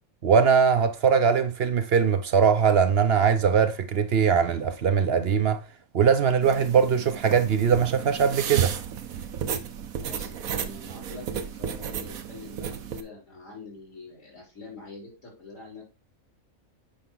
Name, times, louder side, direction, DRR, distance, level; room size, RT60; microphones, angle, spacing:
voice 1, 0.2-5.6 5.9-8.7, right 6 dB, 55° right, 0.8 m, -21 dB
sound 1, 6.4-13.0, right 8 dB, 80° right, 1.3 m, -33 dB
voice 2, 10.0-15.8, left 4 dB, 60° left, 4.2 m, -45 dB
8.6 x 5.3 x 3.8 m
omnidirectional pair, 1.5 m